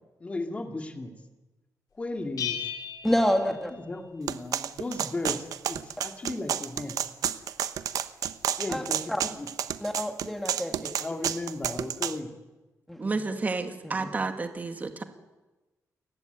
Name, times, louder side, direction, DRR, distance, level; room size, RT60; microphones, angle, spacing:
voice 1, 0.2-1.1 2.0-2.6 3.4-3.5 3.9-5.4 5.7-7.0 8.6-9.5 11.0-12.3, left 2 dB, 20° left, 5 dB, 2.5 m, -35 dB
Bell, 2.4-4.2, left 9 dB, 75° left, 4.1 m, -36 dB
voice 2, 3.0-3.7 8.7-9.2 9.8-10.9 12.9-13.2 13.8-14.1, equal, 5° left, 4 dB, 2.6 m, -28 dB
sound 1, 4.3-12.2, right 9 dB, 80° right, 1.0 m, -30 dB
voice 3, 13.0-15.0, right 3 dB, 25° right, 7 dB, 2.0 m, -31 dB
29.5 x 15.5 x 9.4 m, 1.1 s
wide cardioid pair, 165°, 6 cm